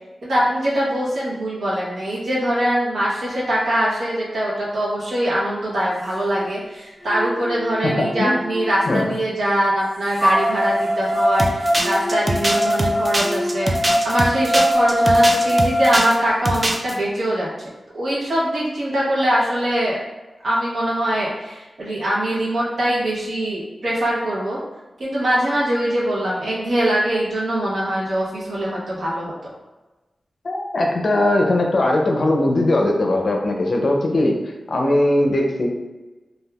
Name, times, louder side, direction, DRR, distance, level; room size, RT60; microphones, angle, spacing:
voice 1, 0.2-13.7 14.0-17.5 17.9-20.0 20.4-24.6 25.0-29.3, equal, 80° right, -7 dB, 1.0 m, -22 dB
sound 1, 6.4-6.5 7.0-8.9 10.2-16.2, equal, 40° right, 1.0 m, -21 dB
voice 2, 7.8-8.4 8.9-9.2 30.4-34.4 34.7-35.7, left 1 dB, 50° left, 1 dB, 0.5 m, -19 dB
sound 2, 11.4-16.2 16.4-16.9, right 1 dB, 25° right, 0.3 m, -23 dB
3.4 x 2.3 x 2.3 m, 1.1 s
wide cardioid pair, 135°, 0 cm